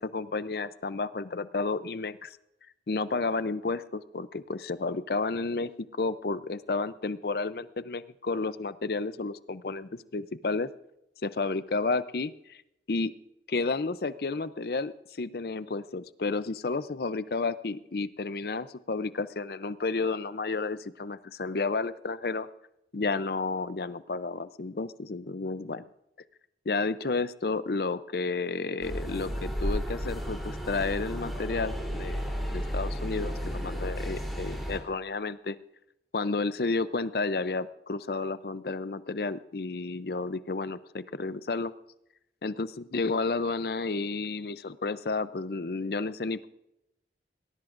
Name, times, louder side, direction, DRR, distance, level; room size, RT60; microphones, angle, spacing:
voice 1, 0.0-2.4 2.9-10.7 11.2-12.6 12.9-13.1 13.5-22.5 22.9-25.9 26.7-35.6 36.1-41.7 42.4-46.5, left 3 dB, 55° left, 14 dB, 0.6 m, -31 dB
sound 1, 28.8-34.8, equal, ahead, 3.3 m, -33 dB
19.0 x 18.5 x 2.5 m, 0.84 s
head